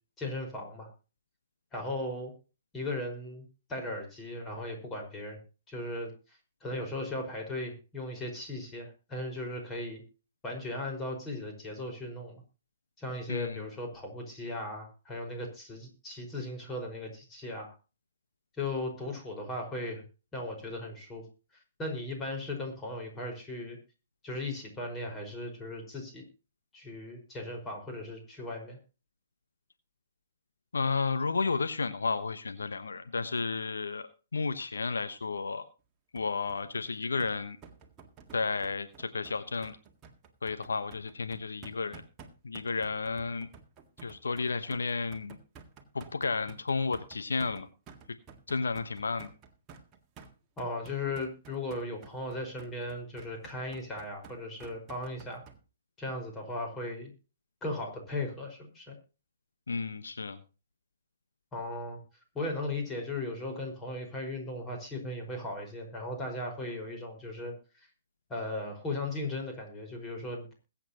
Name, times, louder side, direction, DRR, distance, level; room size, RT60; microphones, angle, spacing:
voice 1, 0.2-0.9 1.7-2.3 2.7-3.4 3.7-5.4 5.7-6.1 6.6-10.0 10.4-12.4 13.0-17.7 18.6-20.0 20.3-21.2 21.8-23.8 24.2-26.2 26.7-28.8 50.6-55.4 56.0-57.1 57.6-58.9 61.5-62.0 62.3-67.9 68.3-70.4, left 2 dB, 15° left, 2 dB, 5.0 m, -37 dB
voice 2, 13.3-13.6 30.7-35.7 36.1-37.6 38.3-39.8 40.4-42.0 42.4-43.5 44.0-45.4 45.9-47.7 48.5-49.3 59.7-60.4, left 4 dB, 75° left, 10 dB, 1.1 m, -32 dB
sound 1, 36.2-55.6, right 5 dB, 25° right, 1.8 m, -52 dB
21.5 x 8.6 x 2.9 m, 0.33 s
figure-of-eight pair, 125°, 0 cm